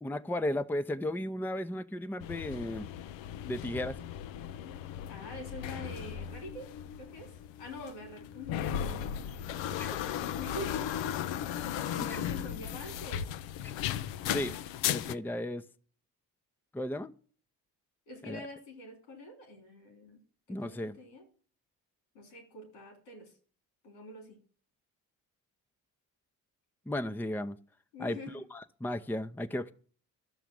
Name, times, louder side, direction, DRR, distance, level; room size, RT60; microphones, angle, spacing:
voice 1, 0.0-2.9 3.5-4.0 9.8-10.0 12.1-12.2 14.3-14.6 14.9-15.6 16.7-17.1 18.3-18.5 20.5-21.0 26.9-27.6 28.0-29.7, left 1 dB, 5° left, 0.8 m, -35 dB
sound 1, 2.2-15.1, left 10 dB, 60° left, 0.8 m, -36 dB
voice 2, 5.1-7.3 7.6-9.2 10.2-11.1 11.5-13.3 18.1-20.2 20.5-21.2 22.1-23.3 23.8-24.4 27.9-28.4, left 1 dB, 80° left, 3.4 m, -45 dB
12.5 x 6.9 x 7.7 m
hypercardioid pair, 45°, 49 cm